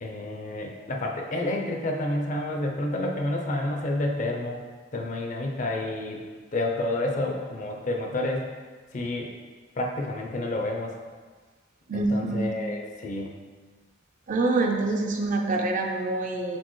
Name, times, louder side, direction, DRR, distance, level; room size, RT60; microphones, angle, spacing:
voice 1, 0.0-4.6 4.9-6.2 6.5-8.4 8.9-9.3 9.8-10.9 11.9-13.3, left 1 dB, 40° left, 1 dB, 0.5 m, -29 dB
voice 2, 11.9-12.5 14.3-16.6, right 2 dB, 45° right, 2 dB, 0.5 m, -26 dB
4.4 x 3.8 x 3.1 m, 1.4 s
head